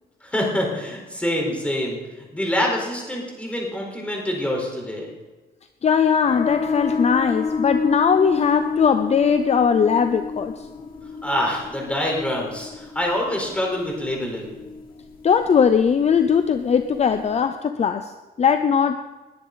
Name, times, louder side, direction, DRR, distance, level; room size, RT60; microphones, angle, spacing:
voice 1, 0.2-2.0 2.3-5.1 11.2-14.6, left 1 dB, 5° left, -1 dB, 4.3 m, -25 dB
voice 2, 5.8-10.7 15.2-18.1 18.4-19.0, left 7 dB, 40° left, 9 dB, 0.6 m, -19 dB
sound 1, 6.2-17.4, left 4 dB, 60° left, 2.3 m, -30 dB
20.0 x 10.5 x 4.0 m, 1.2 s
wide cardioid pair, 140°, 17 cm